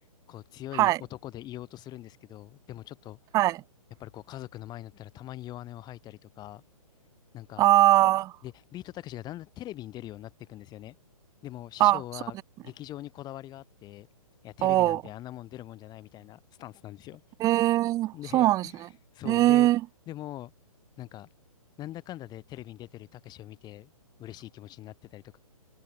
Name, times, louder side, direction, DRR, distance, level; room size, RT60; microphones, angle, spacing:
voice 1, 0.3-3.2 4.0-6.6 7.3-7.6 8.4-10.9 11.4-12.4 12.6-14.1 14.4-17.2 18.1-18.9 19.1-19.7 20.1-20.5 21.0-21.3 21.8-23.9 24.2-25.4, left 14 dB, 20° left, 6.3 m, -42 dB
voice 2, 7.6-8.3 11.8-12.0 14.6-15.0 17.4-18.7 19.3-19.8, right 15 dB, 15° right, 0.7 m, -21 dB
figure-of-eight pair, 130°, 19 cm